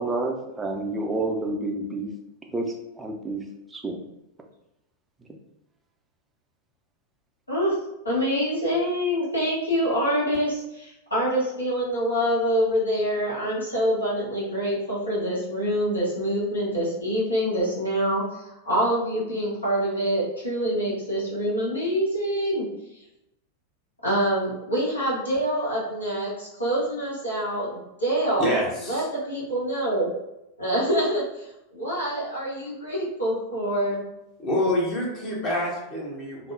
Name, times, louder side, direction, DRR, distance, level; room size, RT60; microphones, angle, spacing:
voice 1, 0.0-2.1 2.5-2.7 3.0-3.4 3.7-4.0, right 2 dB, 10° right, 2 dB, 0.4 m, -29 dB
voice 2, 8.0-22.6 24.0-30.1 30.6-34.0, equal, 80° left, -7 dB, 1.4 m, -26 dB
voice 3, 28.4-29.1 34.4-36.5, left 1 dB, 30° left, -5 dB, 1.0 m, -27 dB
3.3 x 2.1 x 2.5 m, 0.89 s
figure-of-eight pair, 90°, 0 cm